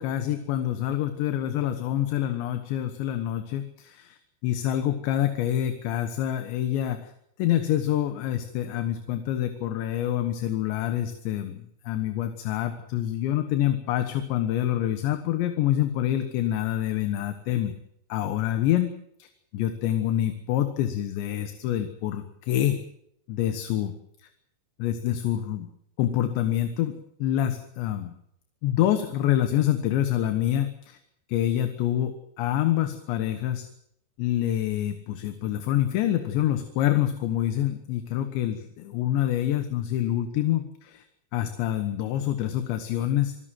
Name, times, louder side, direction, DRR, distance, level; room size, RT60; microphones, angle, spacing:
voice 1, 0.0-7.1 7.4-17.7 18.1-18.9 19.2-19.3 19.5-22.8 23.3-23.9 24.8-25.7 26.0-28.1 28.6-31.0 31.3-33.7 34.2-41.0 41.3-43.4, left 12 dB, 80° left, 8 dB, 3.5 m, -26 dB
27.0 x 16.5 x 7.6 m, 0.75 s
omnidirectional pair, 5.2 m